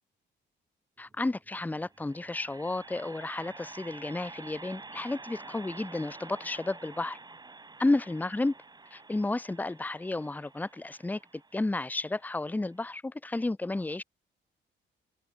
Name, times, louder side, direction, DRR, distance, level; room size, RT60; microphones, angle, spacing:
voice 1, 1.0-7.2 7.8-8.6 8.9-14.0, left 2 dB, 10° left, 0.6 m, -32 dB
sound 1, 1.0-12.8, right 3 dB, 20° right, 1.6 m, -49 dB
cardioid pair, 90°, 20 cm